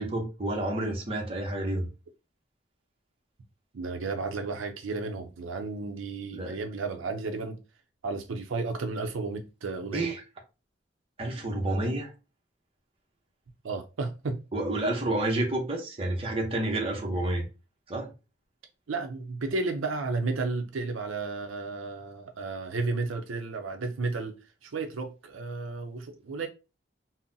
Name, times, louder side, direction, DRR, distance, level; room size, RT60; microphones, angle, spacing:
voice 1, 0.0-1.9 6.3-6.6 9.9-10.2 11.2-12.1 14.5-17.5 17.9-18.1, right 1 dB, 30° right, 0.7 m, -29 dB
voice 2, 3.7-7.6 8.0-10.1 13.6-14.4 18.9-26.5, right 3 dB, 85° right, 0.5 m, -33 dB
3.8 x 2.0 x 2.6 m
head